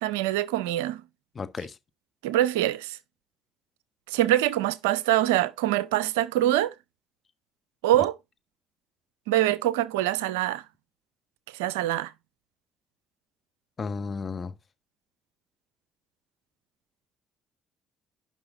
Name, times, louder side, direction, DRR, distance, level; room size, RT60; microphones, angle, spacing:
voice 1, 0.0-1.0 2.2-3.0 4.1-6.7 7.8-8.2 9.3-10.6 11.5-12.1, right 14 dB, 85° right, 0.5 m, -24 dB
voice 2, 1.3-1.7 13.8-14.5, left 4 dB, 40° left, 1.3 m, -33 dB
10.0 x 5.7 x 3.8 m
hypercardioid pair, 50°, 0 cm